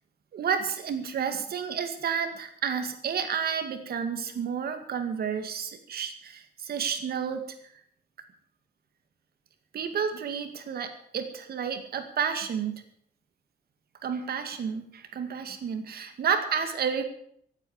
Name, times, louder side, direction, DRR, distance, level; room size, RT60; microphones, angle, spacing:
voice 1, 0.3-7.5 9.7-12.8 14.0-17.0, right 7 dB, 70° right, 8 dB, 2.1 m, -31 dB
16.0 x 9.0 x 8.2 m, 0.67 s
wide cardioid pair, 175°, 16 cm